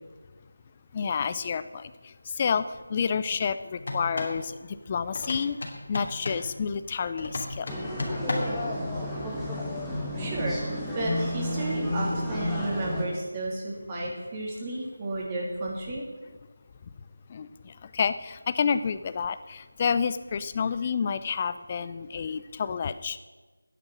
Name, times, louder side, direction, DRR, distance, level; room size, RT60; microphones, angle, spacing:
voice 1, 0.9-1.9 2.4-2.6 2.9-4.6 4.9-5.6 5.9-7.7 17.3-17.5 17.9-23.2, left 6 dB, 25° left, 13 dB, 0.5 m, -29 dB
sound 1, 3.8-4.4 5.1-6.5 7.2-8.6, left 1 dB, 50° left, 2.9 m, -34 dB
sound 2, 7.7-13.0, left 1 dB, ahead, 2.1 m, -31 dB
voice 2, 10.1-10.6 10.9-16.1, right 2 dB, 20° right, -3 dB, 3.2 m, -32 dB
12.0 x 10.0 x 6.4 m, 1.3 s
figure-of-eight pair, 165°, 0 cm